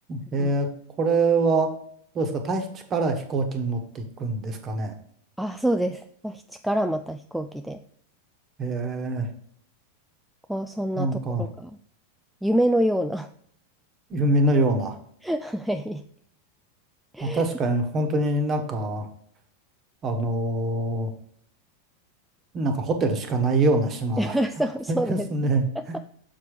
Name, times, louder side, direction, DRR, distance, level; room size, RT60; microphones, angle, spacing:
voice 1, 0.1-0.7 1.0-1.7 2.1-5.0 8.6-9.3 11.0-11.5 14.1-15.0 17.2-19.1 20.0-21.1 22.5-24.4 24.9-26.0, right 2 dB, 30° right, 5 dB, 1.3 m, -24 dB
voice 2, 5.4-7.8 10.5-11.1 11.4-11.8 12.4-13.3 15.2-16.0 17.1-17.4 24.2-25.3, right 1 dB, ahead, 7 dB, 0.3 m, -26 dB
6.8 x 4.8 x 4.9 m, 0.64 s
figure-of-eight pair, 90°, 0 cm